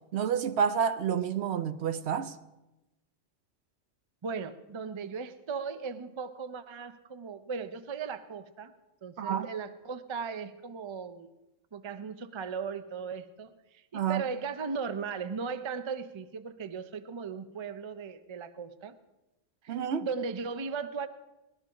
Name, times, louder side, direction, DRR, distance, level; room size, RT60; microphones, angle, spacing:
voice 1, 0.1-2.4 9.2-9.5 13.9-14.2 19.7-20.1, right 7 dB, 65° right, 0.8 m, -29 dB
voice 2, 4.2-8.7 9.0-11.3 11.7-19.0 19.6-21.1, right 5 dB, 35° right, 0.4 m, -37 dB
19.0 x 12.5 x 3.8 m
omnidirectional pair, 1.3 m